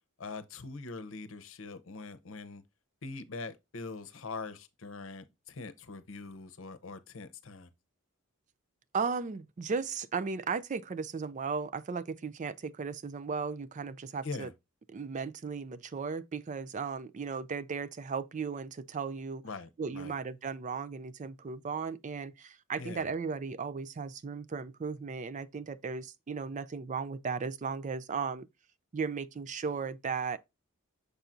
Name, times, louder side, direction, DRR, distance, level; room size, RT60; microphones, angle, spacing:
voice 1, 0.2-2.6 3.0-7.7 14.2-14.5 19.4-20.1 22.8-23.1, left 3 dB, 65° left, 0.8 m, -43 dB
voice 2, 8.9-14.5 14.9-19.4 19.8-28.5 28.9-30.4, right 5 dB, 35° right, 0.4 m, -36 dB
6.8 x 5.7 x 2.5 m
head